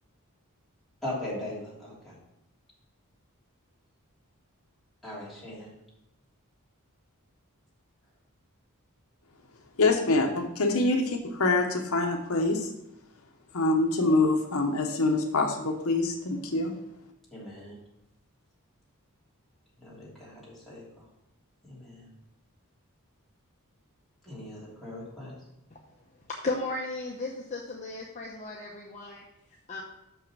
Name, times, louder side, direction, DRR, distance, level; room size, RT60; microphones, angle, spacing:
voice 1, 1.0-2.2 5.0-5.7 17.3-17.8 19.8-21.0 21.7-22.1 24.2-25.3, left 1 dB, ahead, -9 dB, 3.1 m, -39 dB
voice 2, 9.8-12.7 13.5-16.7, left 2 dB, 70° left, 3 dB, 0.9 m, -25 dB
voice 3, 26.3-29.2 29.7-29.8, left 3 dB, 35° left, -2 dB, 0.8 m, -35 dB
6.1 x 5.6 x 6.1 m, 0.83 s
head